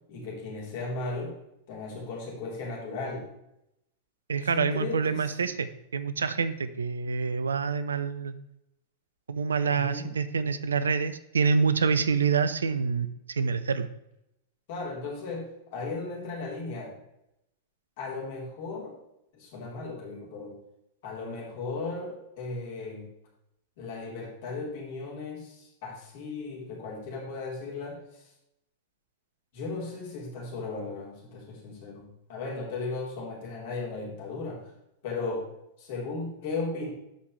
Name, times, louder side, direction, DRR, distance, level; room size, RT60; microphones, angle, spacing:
voice 1, 0.1-1.3 1.7-3.3 4.4-5.5 9.7-10.1 14.7-16.9 18.0-19.0 19.3-20.6 21.0-23.1 23.8-28.3 29.5-34.6 35.0-35.5 35.8-36.9, left 3 dB, 50° left, -3 dB, 3.4 m, -36 dB
voice 2, 4.3-8.3 9.3-13.9, right 5 dB, 75° right, 14 dB, 0.5 m, -27 dB
13.0 x 5.3 x 3.1 m, 0.84 s
figure-of-eight pair, 95°, 0 cm